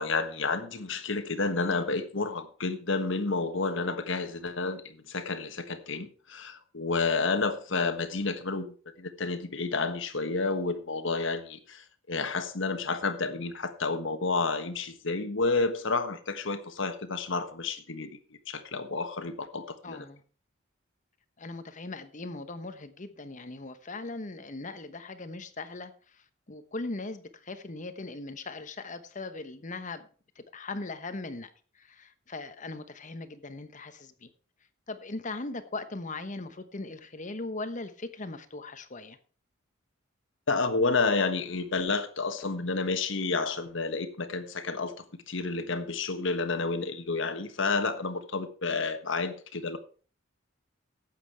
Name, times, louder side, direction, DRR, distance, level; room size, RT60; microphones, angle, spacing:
voice 1, 0.0-18.2 18.5-20.0 40.5-49.8, left 3 dB, 65° left, 1.4 m, -30 dB
voice 2, 19.8-20.2 21.4-25.9 26.5-30.1 30.5-31.5 31.8-34.3 34.9-39.2, left 2 dB, 40° left, 1.1 m, -39 dB
12.0 x 8.7 x 4.7 m
head